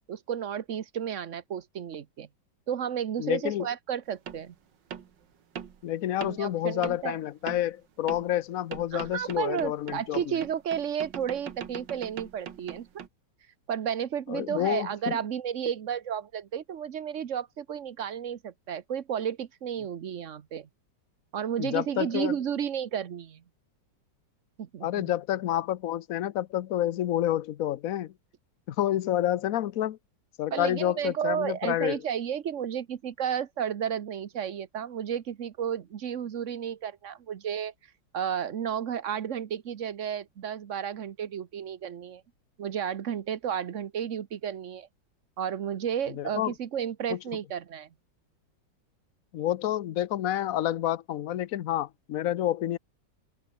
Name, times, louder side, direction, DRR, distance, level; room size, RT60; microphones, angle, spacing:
voice 1, 0.1-2.3 2.7-4.5 6.2-7.2 8.9-12.9 13.7-20.7 21.3-23.4 24.6-25.1 30.5-37.7 38.1-42.2 42.6-44.9 45.4-47.9, right 8 dB, 50° right, 1.1 m, -32 dB
voice 2, 3.2-3.7 5.8-10.2 14.3-15.2 21.6-22.3 24.8-28.1 28.7-30.0 30.4-32.0 46.1-46.5 47.1-47.2 49.3-52.8, left 12 dB, 60° left, 1.0 m, -29 dB
sound 1, 4.3-4.4 4.9-5.1 5.6-5.8 6.2-6.4 6.8-7.1 7.5-7.7 8.1-8.3 8.7-13.1, right 8 dB, 75° right, 2.2 m, -41 dB
open air
omnidirectional pair, 2.0 m